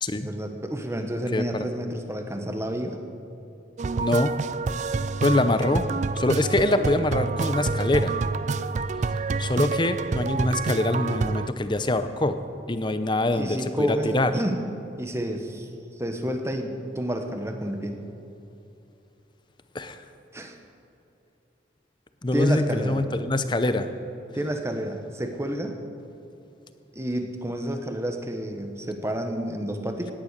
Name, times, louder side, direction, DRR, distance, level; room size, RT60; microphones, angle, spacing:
voice 1, 0.1-3.0 13.3-14.6 15.0-15.7 16.0-18.0 20.3-20.6 22.3-23.0 24.3-25.7 26.9-30.1, right 1 dB, 15° right, 5 dB, 1.1 m, -30 dB
voice 2, 1.3-1.7 4.0-4.3 5.2-5.8 6.2-8.1 9.4-12.4 12.7-14.3 19.7-20.0 22.2-23.9, left 2 dB, 25° left, 10 dB, 0.7 m, -24 dB
sound 1, 3.8-11.5, right 4 dB, 40° right, 0.3 m, -28 dB
17.5 x 10.0 x 6.7 m, 2.8 s
head